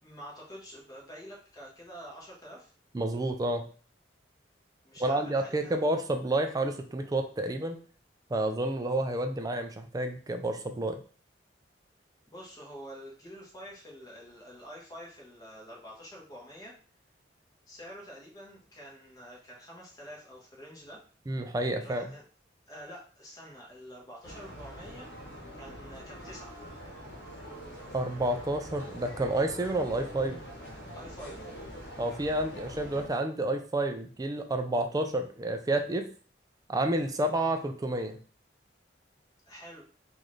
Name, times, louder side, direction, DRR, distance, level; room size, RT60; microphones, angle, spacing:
voice 1, 0.0-2.7 4.8-5.9 12.3-16.7 17.7-21.0 21.7-22.2 22.7-25.1 25.5-26.5 30.9-31.5 39.5-39.9, equal, 20° left, -3 dB, 1.3 m, -47 dB
voice 2, 2.9-3.7 5.0-7.8 8.3-11.0 21.3-22.1 27.9-30.4 32.0-36.1 36.7-38.2, right 1 dB, 20° right, 5 dB, 0.4 m, -30 dB
sound 1, 24.2-33.1, equal, 75° left, 1.0 m, -44 dB
3.9 x 2.6 x 3.1 m, 0.41 s
head